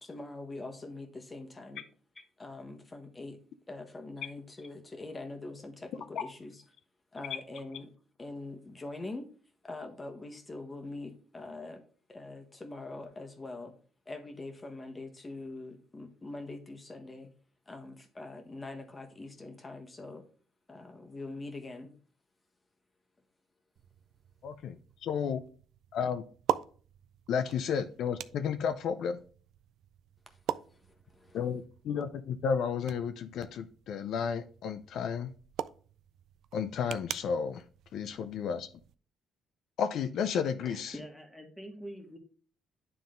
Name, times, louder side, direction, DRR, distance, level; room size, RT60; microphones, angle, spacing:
voice 1, 0.0-1.8 2.4-3.4 3.7-6.6 7.1-7.9 8.2-9.3 9.6-11.8 12.1-13.7 14.1-17.3 17.7-20.2 20.7-21.9 30.7-31.4, left 2 dB, 20° left, 1.2 m, -43 dB
sound 1, 23.8-39.0, right 11 dB, 70° right, 0.3 m, -42 dB
voice 2, 24.4-24.8 25.0-25.4 25.9-26.2 27.3-29.2 31.3-35.3 36.5-37.6 37.9-38.7 39.8-40.9, left 7 dB, 70° left, 0.4 m, -32 dB
voice 3, 40.6-42.2, equal, ahead, 1.7 m, -45 dB
9.3 x 3.7 x 3.8 m
cardioid pair, 100°, 0 cm